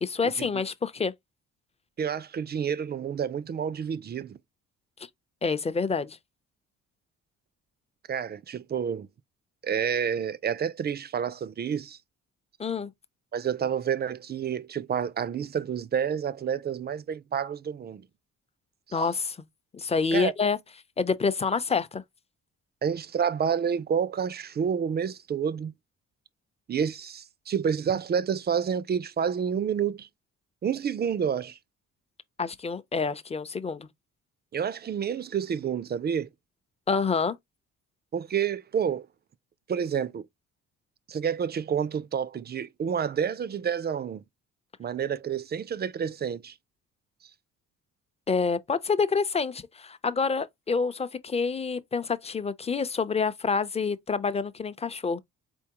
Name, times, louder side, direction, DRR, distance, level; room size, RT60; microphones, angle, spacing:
voice 1, 0.0-1.1 5.4-6.2 12.6-12.9 18.9-19.5 19.7-20.6 21.0-22.0 32.4-33.9 36.9-37.4 48.3-55.2, left 5 dB, 20° left, 0.6 m, -27 dB
voice 2, 2.0-4.4 8.1-9.1 9.6-12.0 13.3-18.1 18.9-19.0 20.1-20.3 22.8-25.7 26.7-30.1 30.6-31.6 34.5-36.3 38.1-39.1 39.7-40.3 41.1-44.2 44.8-46.5, right 7 dB, 35° right, 0.4 m, -29 dB
4.4 x 3.5 x 2.9 m
cardioid pair, 90°, 30 cm